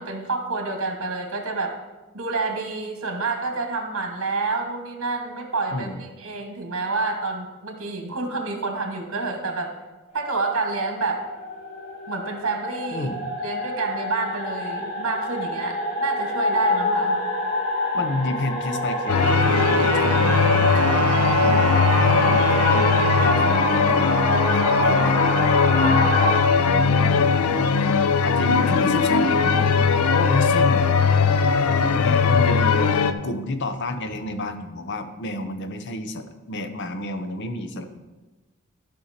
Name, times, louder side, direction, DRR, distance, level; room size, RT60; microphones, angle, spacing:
voice 1, 0.0-1.7 2.1-9.7 10.1-11.2 12.1-13.1 13.4-17.2 21.4-21.5 22.0-22.3 26.6-27.2, right 3 dB, 65° right, 3 dB, 1.4 m, -28 dB
voice 2, 5.7-6.0 12.9-13.3 17.9-20.9 21.4-21.6 22.3-22.9 23.2-26.2 27.0-30.9 31.8-37.8, left 1 dB, 55° left, 8 dB, 0.7 m, -30 dB
sound 1, 10.1-26.4, left 1 dB, 35° left, 2.4 m, -26 dB
sound 2, 19.1-33.1, left 5 dB, 85° left, 0.5 m, -19 dB
Wind instrument woodwind instrument, 19.1-23.7, right 7 dB, 80° right, 0.4 m, -28 dB
12.5 x 5.4 x 4.3 m, 1.2 s
head